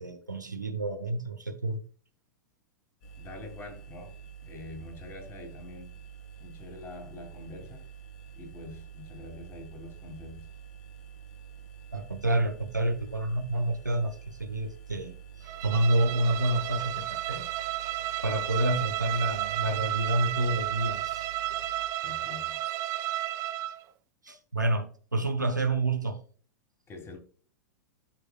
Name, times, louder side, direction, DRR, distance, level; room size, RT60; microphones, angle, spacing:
voice 1, 0.0-1.8 11.9-17.5 18.2-21.2 21.5-21.6 24.2-26.2, right 2 dB, 90° right, 1.0 m, -29 dB
sound 1, 3.0-21.9, right 8 dB, 45° left, 2.5 m, -48 dB
voice 2, 3.2-4.2 4.4-5.9 6.4-7.8 8.4-10.5 22.0-22.6 26.9-27.2, left 2 dB, 25° left, 2.9 m, -45 dB
Bowed string instrument, 15.5-23.8, right 14 dB, 35° right, 0.5 m, -33 dB
12.5 x 4.9 x 2.3 m
figure-of-eight pair, 95°, 10 cm